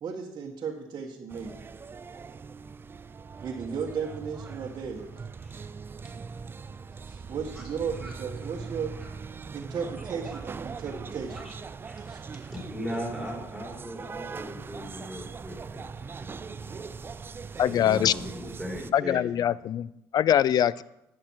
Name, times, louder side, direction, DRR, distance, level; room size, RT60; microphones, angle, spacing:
voice 1, 0.0-1.5 3.4-5.1 7.3-8.9 9.5-11.4, right 6 dB, 45° right, -3 dB, 1.5 m, -35 dB
sound 1, 1.3-18.9, right 5 dB, 25° right, 0.4 m, -41 dB
voice 2, 7.0-7.7 8.0-8.1 9.0-9.1 10.3-10.4 11.3-11.5 11.8-16.9 17.5-19.6, equal, ahead, -2 dB, 5.3 m, -40 dB
voice 3, 17.6-18.1 18.9-19.9 20.1-20.8, left 10 dB, 50° left, 21 dB, 0.4 m, -23 dB
11.5 x 8.9 x 4.7 m, 0.83 s
supercardioid pair, 95°, 9 cm